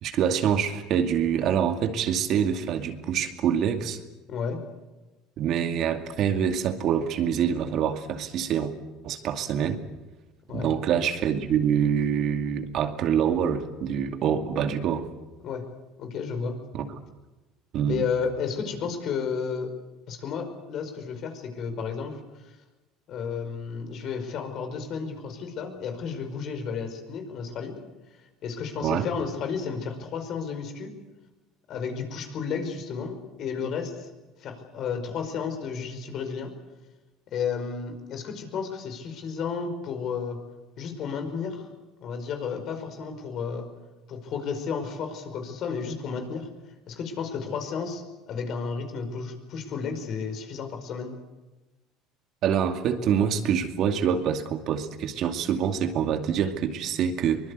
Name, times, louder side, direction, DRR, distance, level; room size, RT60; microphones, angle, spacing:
voice 1, 0.0-4.0 5.4-8.7 9.0-9.8 10.5-15.1 16.7-17.0 17.7-18.0 28.8-29.1 52.4-57.5, right 8 dB, 55° right, 7 dB, 2.3 m, -25 dB
voice 2, 4.3-4.6 10.5-10.7 15.4-15.6 16.0-16.6 17.8-19.7 20.1-22.5 23.1-27.8 28.4-31.0 31.7-34.1 34.4-36.5 37.3-40.4 40.8-41.6 42.0-43.7 44.1-46.5 46.9-51.2, left 6 dB, 55° left, 6 dB, 5.1 m, -32 dB
23.5 x 21.0 x 8.2 m, 1.1 s
supercardioid pair, 95°, 0 cm